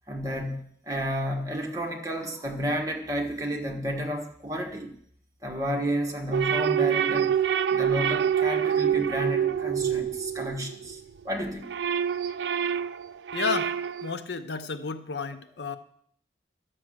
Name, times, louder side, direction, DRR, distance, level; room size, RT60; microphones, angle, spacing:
voice 1, 0.1-4.9 5.4-7.3 7.7-11.0 11.2-11.7, equal, 20° right, 1 dB, 1.4 m, -31 dB
sound 1, 6.3-11.0 11.4-14.2, right 8 dB, 75° right, 0.4 m, -26 dB
voice 2, 13.3-13.8 14.0-15.8, left 5 dB, 70° left, 11 dB, 0.7 m, -31 dB
12.0 x 6.3 x 7.8 m, 0.66 s
head